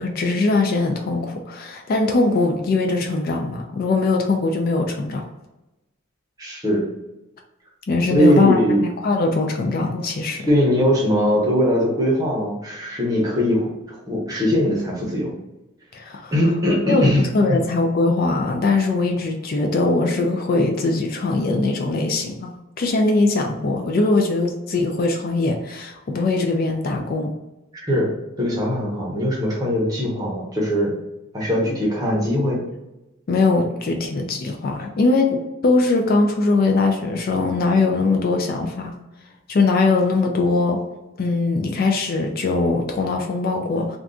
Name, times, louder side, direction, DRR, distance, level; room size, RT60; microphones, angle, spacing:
voice 1, 0.0-5.2 7.9-10.5 15.9-16.3 16.9-17.1 17.3-27.3 33.3-38.9 39.5-40.8 41.2-44.0, left 3 dB, 45° left, 3 dB, 0.4 m, -21 dB
voice 2, 6.4-6.9 8.0-8.9 10.5-15.3 16.3-17.6 27.7-30.9 31.3-32.6, equal, 20° right, -3 dB, 0.8 m, -21 dB
2.5 x 2.3 x 3.6 m, 0.98 s
head